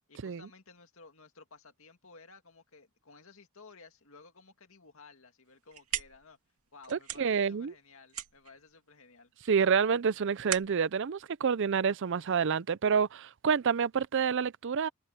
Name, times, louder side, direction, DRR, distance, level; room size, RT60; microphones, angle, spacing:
voice 1, 0.1-6.4 6.7-9.3, left 4 dB, 65° left, 2.4 m, -56 dB
sound 1, 5.5-12.3, right 11 dB, 85° right, 2.3 m, -42 dB
voice 2, 6.9-7.7 9.5-14.9, right 6 dB, 55° right, 0.5 m, -28 dB
head